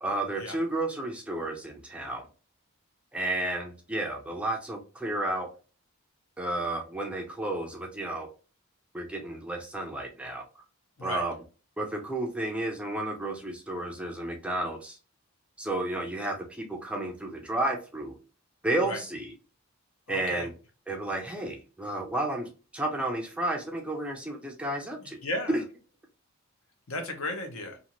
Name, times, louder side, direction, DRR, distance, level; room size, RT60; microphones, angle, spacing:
voice 1, 0.0-2.3 3.1-5.5 6.4-8.3 8.9-10.4 11.0-11.4 11.8-15.0 15.6-18.1 18.6-19.3 20.1-20.5 20.9-25.2, right 2 dB, 5° right, 2 dB, 0.3 m, -32 dB
voice 2, 20.1-20.5 25.0-25.6 26.9-27.8, left 1 dB, 70° left, 4 dB, 0.8 m, -35 dB
2.6 x 2.4 x 2.8 m, 0.34 s
head